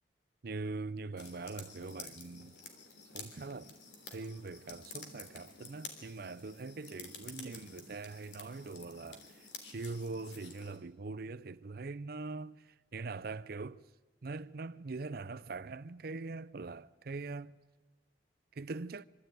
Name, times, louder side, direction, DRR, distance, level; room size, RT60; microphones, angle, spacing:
voice 1, 0.4-2.6 3.1-3.7 4.1-13.8 14.2-17.6 18.5-19.0, right 3 dB, 60° right, 0.6 m, -42 dB
sound 1, 1.2-10.8, left 4 dB, 75° left, 3.3 m, -51 dB
25.0 x 13.5 x 9.2 m
head